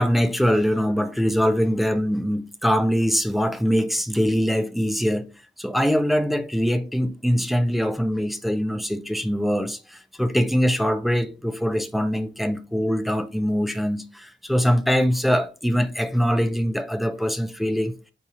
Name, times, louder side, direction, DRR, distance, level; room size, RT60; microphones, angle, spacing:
voice 1, 0.0-5.3 5.6-17.9, equal, ahead, 0.3 m, -23 dB
3.9 x 2.8 x 2.4 m
wide cardioid pair, 110°, 20 cm